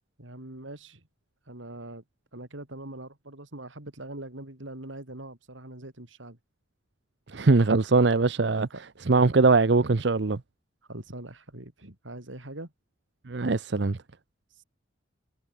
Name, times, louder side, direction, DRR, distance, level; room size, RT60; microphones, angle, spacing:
voice 1, 0.2-1.0 1.5-2.0 2.3-6.4 8.7-8.8 10.9-12.7, right 1 dB, 90° right, 3.8 m, -42 dB
voice 2, 7.3-8.7 9.1-10.4 13.3-14.0, right 3 dB, 65° right, 0.7 m, -21 dB
head